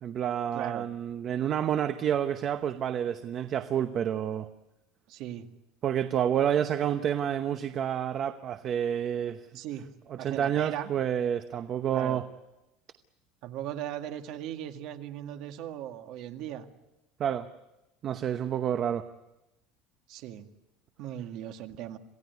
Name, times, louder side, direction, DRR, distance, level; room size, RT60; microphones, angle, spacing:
voice 1, 0.0-4.5 5.8-9.4 10.1-12.2 17.2-17.5 18.0-19.0, right 9 dB, 35° right, 9 dB, 0.9 m, -29 dB
voice 2, 0.5-0.9 5.1-5.5 9.5-9.9 10.2-10.9 11.9-12.2 13.4-16.7 20.1-20.5 21.0-22.0, right 11 dB, 55° right, 6 dB, 1.9 m, -38 dB
27.0 x 17.0 x 9.5 m, 0.99 s
cardioid pair, 160°, 0 cm